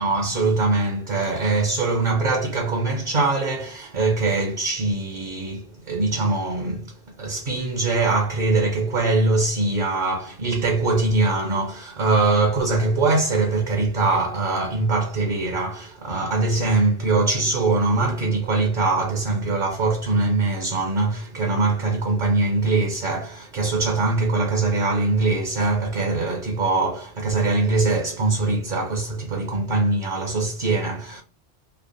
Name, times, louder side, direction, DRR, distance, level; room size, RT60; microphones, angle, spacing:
voice 1, 0.0-6.9 7.2-31.2, right 3 dB, 50° right, 0.8 m, -22 dB
3.4 x 2.1 x 3.7 m
omnidirectional pair, 1.1 m